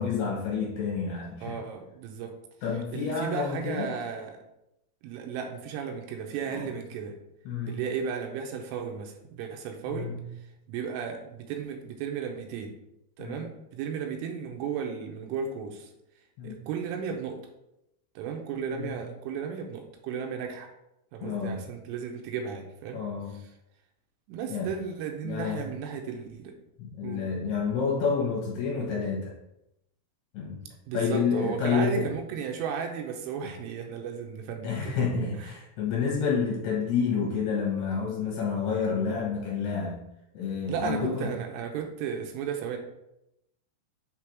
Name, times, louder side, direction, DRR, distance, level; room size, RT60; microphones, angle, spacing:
voice 1, 0.0-1.5 2.6-3.9 6.5-6.7 7.5-7.8 9.9-10.2 13.2-13.5 16.4-16.6 18.7-19.0 21.2-21.6 22.9-23.4 24.5-24.7 25.2-25.6 26.8-29.3 30.3-30.6 30.9-32.1 34.6-40.0 40.3-41.3, left 5 dB, 70° left, -3 dB, 2.8 m, -29 dB
voice 2, 1.4-2.4 2.9-4.4 5.0-7.1 7.7-10.1 10.7-12.7 13.2-15.9 16.4-17.4 18.2-20.7 21.1-23.0 24.3-26.6 27.0-27.2 30.9-35.0 35.4-35.5 40.7-42.8, right 6 dB, 80° right, 4 dB, 3.2 m, -34 dB
7.6 x 3.4 x 4.5 m, 0.85 s
omnidirectional pair, 5.7 m